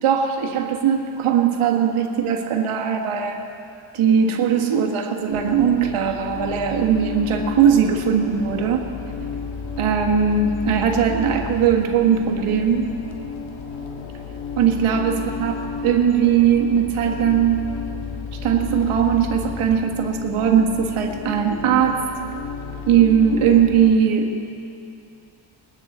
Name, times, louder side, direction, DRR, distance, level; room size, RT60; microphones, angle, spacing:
voice 1, 0.0-3.4 3.9-8.9 9.8-12.9 14.6-15.5 15.8-17.7 18.4-22.1 22.9-24.3, right 7 dB, 80° right, 3 dB, 1.5 m, -19 dB
sound 1, 5.3-23.9, left 5 dB, 65° left, 1.6 m, -32 dB
21.5 x 10.0 x 4.2 m, 2.6 s
cardioid pair, 120°, 50 cm